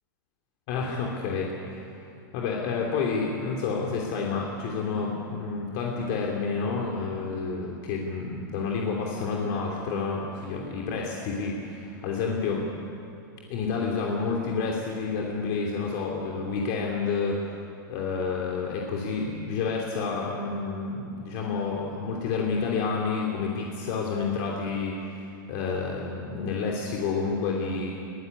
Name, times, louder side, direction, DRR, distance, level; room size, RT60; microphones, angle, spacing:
voice 1, 0.7-2.0 2.3-12.7 13.5-17.4 17.9-27.9, left 4 dB, 50° left, -1 dB, 3.1 m, -29 dB
22.0 x 14.0 x 9.8 m, 2.7 s
supercardioid pair, 140°, 11 cm